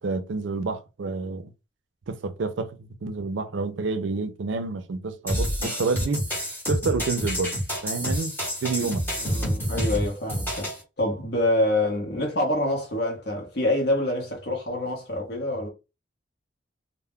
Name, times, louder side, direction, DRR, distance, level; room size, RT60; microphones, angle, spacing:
voice 1, 0.0-1.5 2.1-6.2 6.7-7.5 7.8-8.3 8.6-9.0, right 4 dB, 75° right, 0.4 m, -28 dB
sound 1, 5.3-10.8, equal, 10° left, 0.9 m, -28 dB
voice 2, 9.2-10.7 11.0-15.7, left 1 dB, 55° left, 0.8 m, -26 dB
2.2 x 2.0 x 3.5 m
head